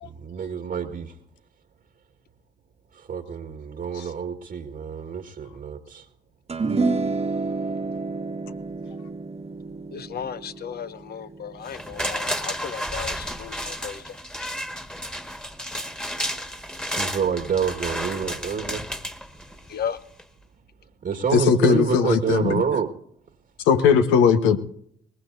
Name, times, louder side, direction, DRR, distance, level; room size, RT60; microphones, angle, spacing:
voice 1, 0.0-1.1 2.9-6.1 16.9-18.8 21.0-22.9, right 7 dB, 55° right, 1.7 m, -28 dB
sound 1, 6.5-13.0, right 3 dB, 35° right, 1.4 m, -29 dB
voice 2, 9.9-14.2 19.7-20.0, left 8 dB, 55° left, 1.0 m, -35 dB
sound 2, 11.6-19.8 20.2-20.3, equal, 5° left, 1.7 m, -32 dB
voice 3, 21.3-22.6 23.6-24.6, left 6 dB, 80° left, 1.2 m, -19 dB
22.0 x 20.5 x 2.7 m
hypercardioid pair, 50°, 20 cm